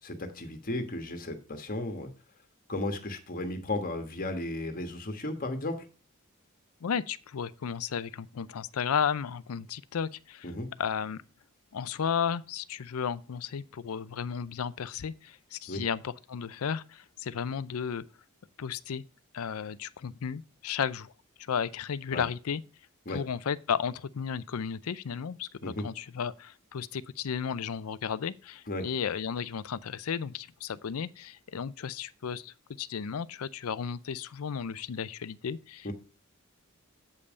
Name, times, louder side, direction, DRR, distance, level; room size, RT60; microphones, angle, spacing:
voice 1, 0.0-2.1 2.7-5.9 10.4-10.7 15.7-15.8 22.1-22.2 23.0-23.2 25.6-25.8 28.7-28.9 35.8-35.9, left 2 dB, 40° left, 1.3 m, -34 dB
voice 2, 6.8-10.5 10.8-11.2 11.7-18.0 18.6-19.0 19.3-21.1 21.4-22.6 23.1-35.9, left 7 dB, 80° left, 0.5 m, -34 dB
8.3 x 5.4 x 5.0 m
head